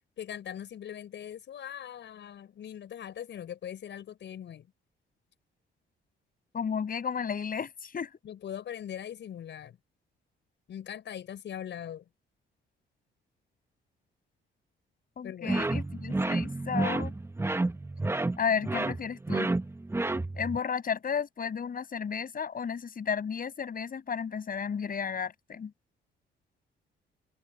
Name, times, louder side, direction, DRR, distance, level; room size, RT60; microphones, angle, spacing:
voice 1, 0.2-4.7 8.2-9.8 10.7-12.0 15.2-15.6, left 10 dB, 65° left, 5.8 m, -41 dB
voice 2, 6.5-8.1 15.2-17.1 18.4-19.5 20.3-25.7, left 6 dB, 45° left, 8.0 m, -33 dB
sound 1, 15.5-20.6, right 2 dB, 10° right, 1.0 m, -30 dB
cardioid pair, 90°, 20 cm